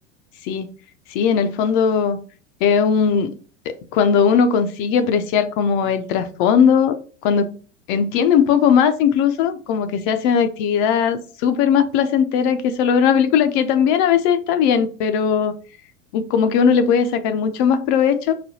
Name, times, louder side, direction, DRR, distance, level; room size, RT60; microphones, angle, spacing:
voice 1, 1.1-2.2 2.6-3.3 3.7-6.9 7.2-7.6 7.9-15.6 16.1-18.3, left 7 dB, 45° left, 9 dB, 0.5 m, -18 dB
4.9 x 2.2 x 2.7 m, 0.39 s
hypercardioid pair, 85°, 36 cm